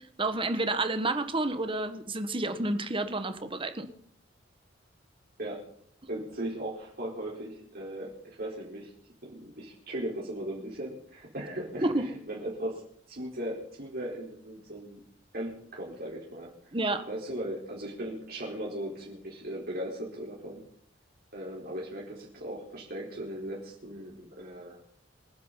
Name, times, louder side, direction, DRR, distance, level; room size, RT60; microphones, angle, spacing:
voice 1, 0.2-3.9 11.8-12.1 16.7-17.1, right 2 dB, 30° right, 9 dB, 1.7 m, -29 dB
voice 2, 6.1-8.9 9.2-12.8 13.1-15.0 15.3-16.5 17.1-20.6 21.3-24.8, right 1 dB, 55° right, -3 dB, 4.4 m, -38 dB
27.0 x 10.0 x 4.1 m, 0.65 s
head